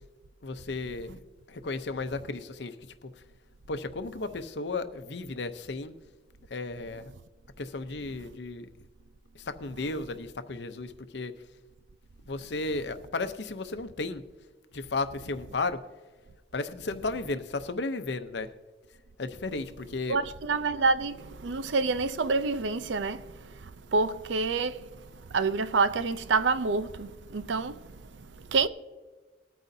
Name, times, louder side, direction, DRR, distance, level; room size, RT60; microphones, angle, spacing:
voice 1, 0.4-1.2 1.5-2.8 3.0-3.1 3.7-5.9 6.5-7.1 7.6-8.7 9.3-11.3 12.3-14.2 14.7-15.8 16.5-18.5 19.2-20.2, left 3 dB, 70° left, 0.7 m, -34 dB
voice 2, 20.1-28.7, right 4 dB, 90° right, 0.6 m, -28 dB
20.5 x 9.1 x 2.7 m
head